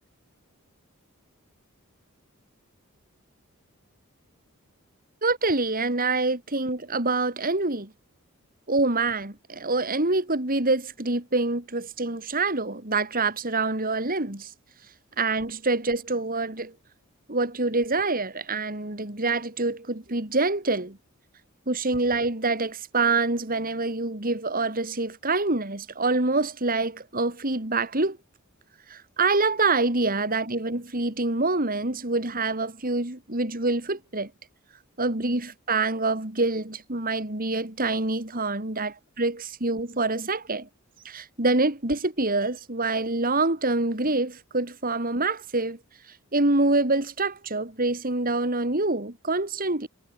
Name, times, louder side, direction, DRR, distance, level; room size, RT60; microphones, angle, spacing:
voice 1, 5.2-7.9 8.7-14.5 15.2-16.7 17.3-21.0 21.7-28.2 28.9-34.3 35.0-40.7 41.0-45.8 46.3-49.9, right 3 dB, 40° right, 3.6 m, -26 dB
head